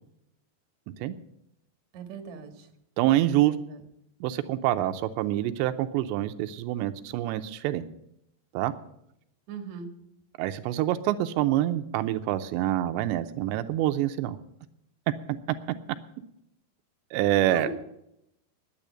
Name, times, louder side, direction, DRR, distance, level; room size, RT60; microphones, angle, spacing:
voice 1, 1.9-2.7 3.5-3.8 9.5-9.9 17.5-17.7, right 5 dB, 55° right, 5 dB, 2.4 m, -39 dB
voice 2, 3.0-3.5 4.2-7.8 8.5-8.7 10.4-14.4 17.1-17.7, right 13 dB, 90° right, 9 dB, 2.9 m, -26 dB
10.5 x 9.1 x 10.0 m, 0.79 s
omnidirectional pair, 5.0 m